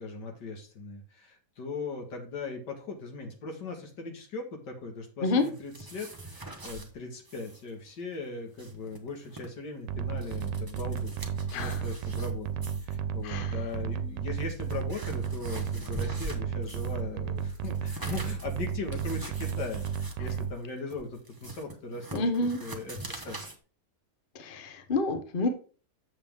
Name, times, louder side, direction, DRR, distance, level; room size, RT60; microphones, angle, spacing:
voice 1, 0.0-11.2 11.5-23.4, left 3 dB, 85° left, 3 dB, 2.3 m, -39 dB
sound 1, 5.4-6.9 7.3-7.6 7.9-8.0 8.4-9.5 10.0-12.3 12.6-13.0 13.7-13.8 14.3-17.0 17.4-23.6, right 2 dB, 15° right, 0.9 m, -44 dB
sound 2, 9.9-20.5, right 7 dB, 90° right, 1.3 m, -33 dB
voice 2, 22.1-22.6 24.3-25.5, left 3 dB, 35° left, 7 dB, 1.0 m, -28 dB
7.3 x 7.1 x 3.5 m, 0.40 s
omnidirectional pair, 1.8 m